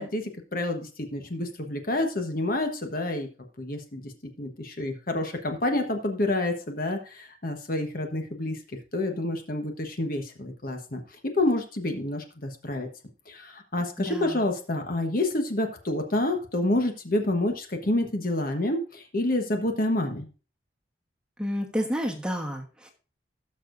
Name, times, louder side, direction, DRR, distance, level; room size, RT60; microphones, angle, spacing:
voice 1, 0.0-3.3 3.6-4.1 4.4-8.6 8.9-11.0 11.3-12.9 13.3-20.3, left 1 dB, 45° left, 4 dB, 1.2 m, -28 dB
voice 2, 14.0-14.4 21.4-22.9, equal, 5° right, 1 dB, 1.2 m, -30 dB
17.0 x 6.4 x 2.6 m, 0.36 s
head